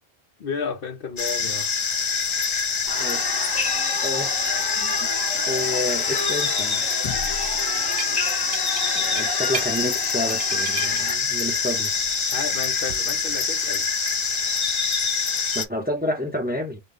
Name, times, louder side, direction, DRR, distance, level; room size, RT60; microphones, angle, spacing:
voice 1, 0.4-1.7 12.3-13.9, left 5 dB, 65° left, 0.9 m, -32 dB
sound 1, 1.2-15.7, left 5 dB, 45° left, 0.4 m, -25 dB
sound 2, 2.9-11.1, left 2 dB, 25° left, 0.9 m, -31 dB
voice 2, 3.0-3.4 4.0-4.4 4.7-5.1 5.5-6.9 8.9-11.9 15.5-16.8, left 1 dB, 10° right, 0.8 m, -29 dB
sound 3, 7.9-8.1 8.5-9.7 10.1-11.0 12.4-13.0, right 8 dB, 75° right, 0.8 m, -34 dB
3.9 x 2.2 x 3.5 m
omnidirectional pair, 1.0 m